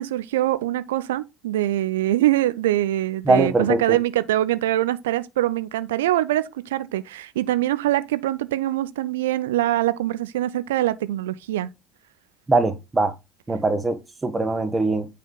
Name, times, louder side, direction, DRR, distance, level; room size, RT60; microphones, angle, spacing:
voice 1, 0.0-11.7, right 14 dB, 75° right, 0.3 m, -23 dB
voice 2, 3.3-4.0 12.5-13.1 13.5-15.1, right 3 dB, 20° right, 1.2 m, -21 dB
9.2 x 3.3 x 3.9 m
hypercardioid pair, 60°, 0 cm